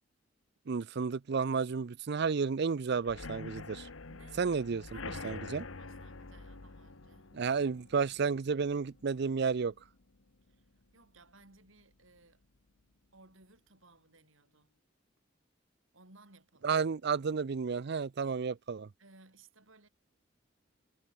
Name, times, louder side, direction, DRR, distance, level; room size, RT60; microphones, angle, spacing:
voice 1, 0.7-3.9 4.4-5.0 5.2-5.6 7.3-9.7 16.6-18.9, right 5 dB, 55° right, 0.5 m, -32 dB
sound 1, 3.0-10.7 11.0-11.4 11.7-11.8 12.2-12.3, left 3 dB, 90° left, 1.4 m, -47 dB
voice 2, 4.1-4.4 4.9-7.3 10.5-12.4 13.1-14.7 15.9-16.8 19.0-19.9, right 3 dB, 80° right, 5.4 m, -61 dB
head